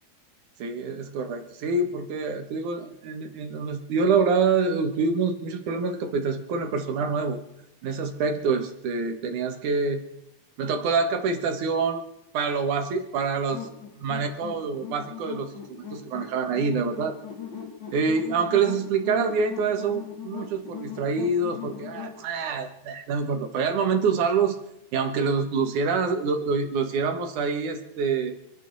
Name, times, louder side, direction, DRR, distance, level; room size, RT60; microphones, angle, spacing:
voice 1, 0.6-7.4 7.8-10.0 10.6-12.0 12.3-13.7 14.0-15.6 15.9-17.2 17.9-24.6 24.9-28.3, right 4 dB, 75° right, 6 dB, 3.0 m, -26 dB
sound 1, 13.5-22.2, left 8 dB, 65° left, 4.7 m, -39 dB
27.0 x 10.5 x 4.1 m, 0.82 s
omnidirectional pair, 3.6 m